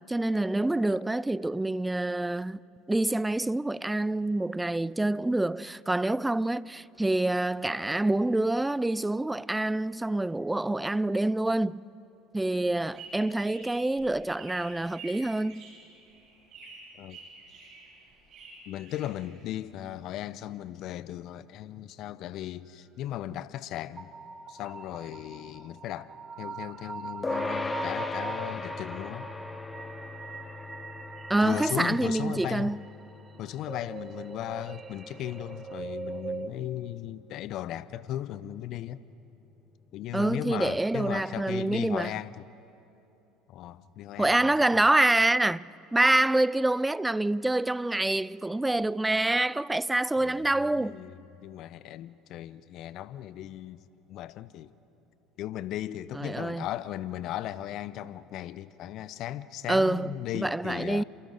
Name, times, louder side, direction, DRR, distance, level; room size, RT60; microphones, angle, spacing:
voice 1, 0.1-2.6 2.9-11.8 12.3-15.7 31.3-32.8 40.1-42.1 44.2-51.0 56.1-56.7 59.7-61.0, right 2 dB, 10° right, 0.4 m, -26 dB
sound 1, 12.7-19.7, right 3 dB, 50° right, 7.1 m, -49 dB
voice 2, 18.7-24.1 24.5-29.3 31.4-32.7 33.4-39.0 39.9-42.5 43.5-44.5 50.2-54.7 55.4-61.0, left 12 dB, 55° left, 0.7 m, -37 dB
sound 2, 24.0-36.5, right 5 dB, 25° right, 0.9 m, -41 dB
sound 3, 27.2-36.9, left 3 dB, 20° left, 0.9 m, -39 dB
29.5 x 28.0 x 3.9 m
hypercardioid pair, 65°, 0 cm